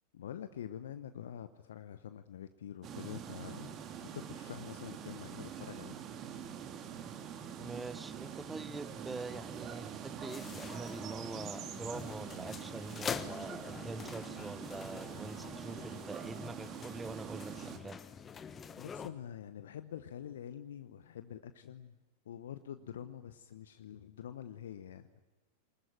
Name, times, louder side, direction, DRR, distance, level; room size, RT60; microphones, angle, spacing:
voice 1, 0.1-6.0 18.8-21.9 22.2-25.2, left 9 dB, 60° left, 11 dB, 1.0 m, -46 dB
sound 1, 2.8-17.8, right 8 dB, 30° right, 2.4 m, -45 dB
voice 2, 7.6-18.0, right 3 dB, 10° right, 17 dB, 1.0 m, -44 dB
sound 2, 10.3-19.1, left 6 dB, 20° left, 1.3 m, -45 dB
24.5 x 20.5 x 9.1 m, 1.2 s
figure-of-eight pair, 90°, 0 cm